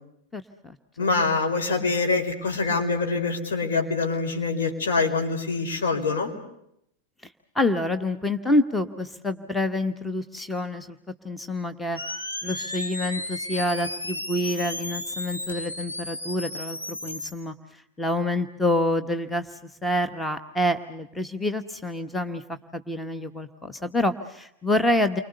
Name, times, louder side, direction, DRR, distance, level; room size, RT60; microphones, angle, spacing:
voice 1, 0.3-1.1 7.5-11.0 11.2-12.0 12.4-25.2, left 1 dB, 5° left, 10 dB, 1.2 m, -27 dB
voice 2, 1.0-6.3, left 4 dB, 60° left, 3 dB, 4.8 m, -25 dB
sound 1, 12.0-17.3, left 1 dB, 90° left, 2.7 m, -34 dB
30.0 x 25.0 x 6.8 m, 0.77 s
figure-of-eight pair, 90°, 0 cm